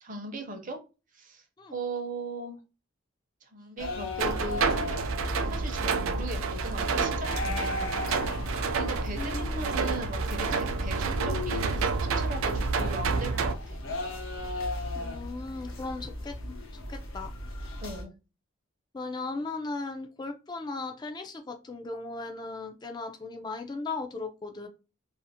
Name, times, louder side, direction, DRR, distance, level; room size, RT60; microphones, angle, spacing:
voice 1, 0.0-0.8 1.1-1.4 1.7-2.6 3.4-5.0 5.4-8.0 8.7-13.8 17.8-18.1, right 2 dB, 40° right, 5 dB, 0.6 m, -39 dB
sound 1, 3.8-18.0, left 1 dB, 75° left, 0.8 m, -36 dB
sound 2, 4.2-13.5, right 4 dB, 80° right, 0.4 m, -29 dB
voice 2, 9.1-9.8 14.9-16.4 16.9-17.3 18.9-24.7, left 3 dB, 20° left, 5 dB, 0.3 m, -37 dB
2.5 x 2.4 x 2.7 m, 0.29 s
head